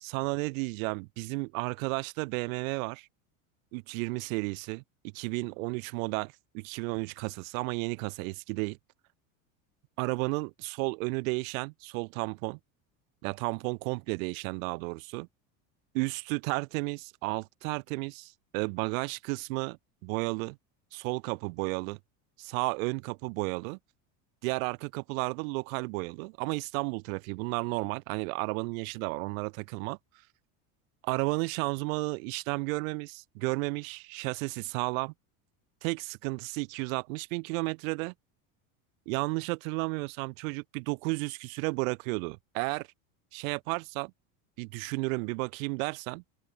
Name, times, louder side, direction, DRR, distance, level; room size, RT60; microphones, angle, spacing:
voice 1, 0.0-3.1 3.7-4.8 5.1-8.8 10.0-12.6 13.2-15.3 15.9-20.6 20.9-22.0 22.4-23.8 24.4-30.0 31.0-35.1 35.8-38.1 39.1-42.9 43.3-44.1 44.6-46.2, right 28 dB, 75° right, 3.5 m, -33 dB
open air
supercardioid pair, 115°, 40 cm